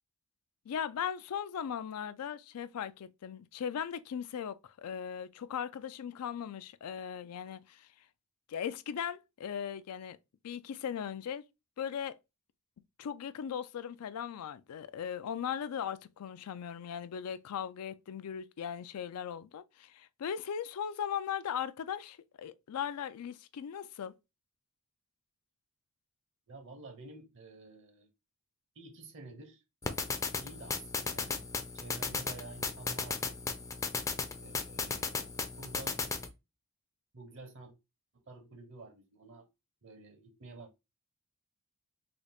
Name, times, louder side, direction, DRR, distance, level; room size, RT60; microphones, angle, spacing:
voice 1, 0.7-7.9 8.5-10.2 10.4-11.4 11.8-12.2 13.0-24.1, left 8 dB, 90° left, 0.4 m, -38 dB
voice 2, 26.5-28.1 28.8-29.6 30.4-31.5 31.7-33.4 34.4-36.0 37.1-37.7 38.1-39.5 39.8-40.8, right 3 dB, 60° right, 0.7 m, -50 dB
sound 1, 29.8-36.3, left 4 dB, 15° left, 0.4 m, -36 dB
3.9 x 2.3 x 3.3 m
head